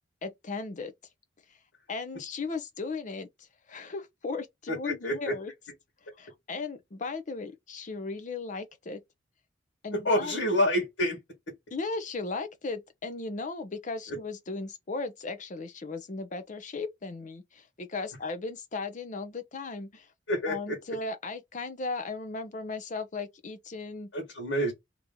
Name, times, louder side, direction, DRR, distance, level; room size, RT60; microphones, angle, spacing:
voice 1, 0.2-0.9 1.9-3.3 3.7-5.5 6.2-9.0 9.8-10.4 11.7-20.1 20.5-24.1, left 3 dB, 40° left, 0.6 m, -36 dB
voice 2, 4.7-5.4 9.9-11.2 14.1-14.2 20.3-20.8 24.1-24.7, equal, 85° left, 1.5 m, -28 dB
3.0 x 2.6 x 3.6 m
head